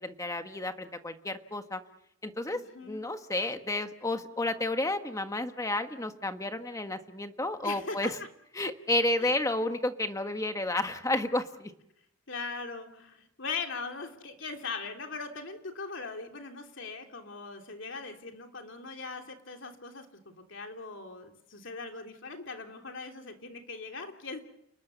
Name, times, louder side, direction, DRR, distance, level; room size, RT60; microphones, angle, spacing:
voice 1, 0.0-1.8 2.2-8.2 8.6-11.7, left 2 dB, 15° left, 7 dB, 1.5 m, -31 dB
voice 2, 2.5-3.1 7.6-8.3 9.2-9.4 12.3-24.4, left 4 dB, 65° left, 4 dB, 3.1 m, -40 dB
29.5 x 20.0 x 7.0 m, 0.78 s
head